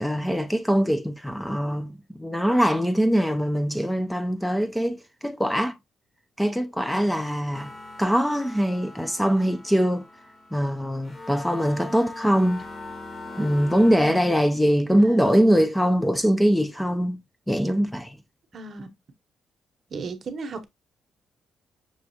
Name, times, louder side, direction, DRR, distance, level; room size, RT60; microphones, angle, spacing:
voice 1, 0.0-5.8 6.4-7.7 8.0-10.1 10.5-12.7 13.4-17.2 17.5-18.2, equal, 5° left, 0.4 m, -22 dB
sound 1, 7.5-14.0, left 2 dB, 35° left, 1.2 m, -41 dB
voice 2, 15.0-15.4 18.5-18.9 19.9-20.7, right 4 dB, 50° right, 0.8 m, -36 dB
6.2 x 2.3 x 2.7 m
cardioid pair, 105°, 0 cm